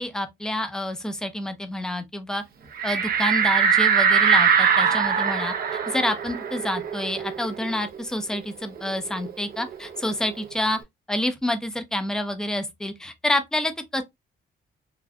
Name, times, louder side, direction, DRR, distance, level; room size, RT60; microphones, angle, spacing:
voice 1, 0.0-2.4 2.8-5.5 5.9-10.8 11.1-14.0, left 1 dB, 5° left, 0.5 m, -28 dB
sound 1, 2.8-8.0 8.3-8.4 8.8-10.4, right 6 dB, 50° right, 0.6 m, -22 dB
3.5 x 2.5 x 2.2 m
cardioid pair, 90°, 20 cm